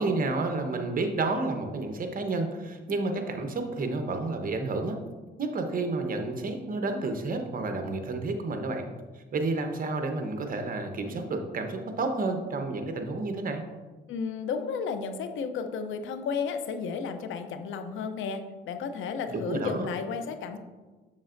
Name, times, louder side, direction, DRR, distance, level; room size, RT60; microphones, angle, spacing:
voice 1, 0.0-5.0 5.4-8.9 9.1-13.6 19.3-19.9, right 3 dB, 45° right, 5 dB, 1.0 m, -30 dB
voice 2, 14.1-20.6, left 5 dB, 80° left, 9 dB, 0.6 m, -33 dB
7.3 x 6.8 x 2.6 m, 1.3 s
cardioid pair, 90°, 20 cm